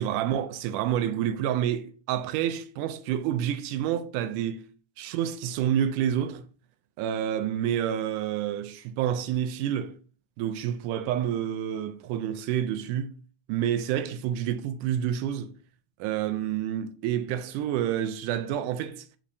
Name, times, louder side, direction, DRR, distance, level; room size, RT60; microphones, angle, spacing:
voice 1, 0.0-4.7 5.0-6.4 7.0-9.9 10.4-13.1 13.5-15.5 16.0-19.1, right 10 dB, 90° right, 2.1 m, -28 dB
7.3 x 5.2 x 2.7 m
omnidirectional pair, 3.6 m